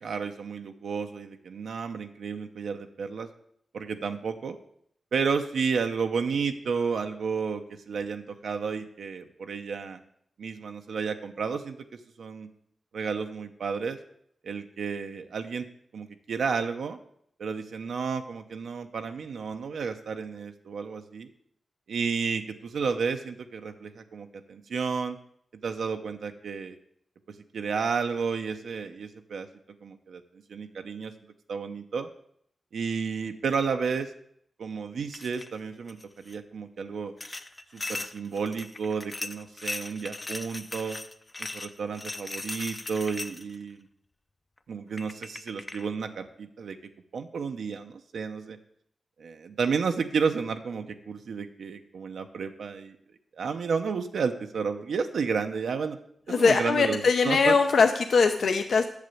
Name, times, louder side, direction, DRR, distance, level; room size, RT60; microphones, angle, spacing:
voice 1, 0.0-3.3 3.7-4.6 5.1-10.0 10.4-12.5 12.9-14.0 14.4-15.6 15.9-17.0 17.4-21.3 21.9-25.2 25.6-26.8 27.5-29.5 29.8-30.2 30.5-31.1 31.5-32.1 32.7-34.1 34.6-37.1 37.7-41.0 41.4-43.9 44.7-46.8 47.1-48.6 49.2-53.0 53.4-56.0 56.3-57.6, right 5 dB, 85° right, 6 dB, 0.8 m, -32 dB
sound 1, 35.1-35.5 35.9-36.4 37.2-43.6 44.6-44.7 45.0-45.9, left 2 dB, 25° left, 0.5 m, -38 dB
voice 2, 56.3-58.8, left 4 dB, 70° left, 5 dB, 0.6 m, -21 dB
8.4 x 6.8 x 7.7 m, 0.69 s
wide cardioid pair, 110°, 0 cm